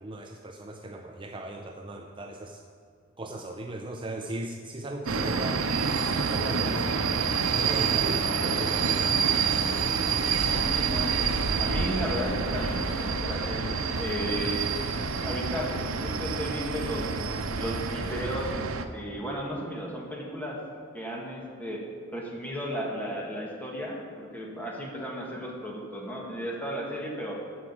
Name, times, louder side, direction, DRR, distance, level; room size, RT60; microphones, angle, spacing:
voice 1, 0.0-2.6 3.2-5.6 6.3-9.3, right 1 dB, 25° right, 3 dB, 0.6 m, -37 dB
sound 1, 5.1-18.9, right 5 dB, 85° right, 0.7 m, -27 dB
voice 2, 10.4-11.2 11.6-14.8 15.2-15.7 16.0-17.1 17.6-18.7 18.9-20.6 20.9-21.8 22.1-27.4, equal, 10° left, -2 dB, 1.8 m, -34 dB
14.0 x 5.0 x 7.3 m, 2.1 s
head